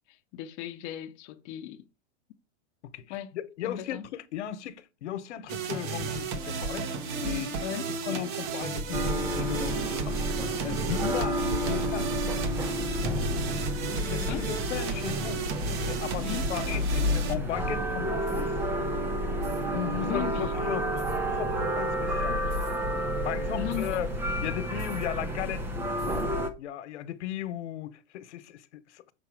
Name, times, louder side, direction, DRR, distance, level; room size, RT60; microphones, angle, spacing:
voice 1, 0.1-1.9 3.1-3.4 3.6-4.1 7.6-7.9 10.9-11.2 14.1-14.5 16.2-16.5 20.0-20.5 23.6-24.0, left 12 dB, 35° left, 0.7 m, -36 dB
voice 2, 2.8-6.9 7.2-7.5 8.0-10.2 10.6-11.4 11.6-12.1 14.4-15.4 15.8-18.5 19.7-22.4 23.2-24.1 24.4-25.6 26.6-29.1, left 11 dB, 85° left, 1.1 m, -36 dB
sound 1, 5.5-17.3, right 5 dB, 45° right, 1.1 m, -33 dB
sound 2, 8.9-26.5, equal, 5° right, 0.3 m, -30 dB
sound 3, 18.2-18.5 19.4-19.7 21.0-21.2 22.4-22.8 23.7-24.0 24.8-25.1 26.0-26.3, right 7 dB, 80° right, 1.5 m, -51 dB
6.8 x 4.9 x 4.8 m
supercardioid pair, 155°, 34 cm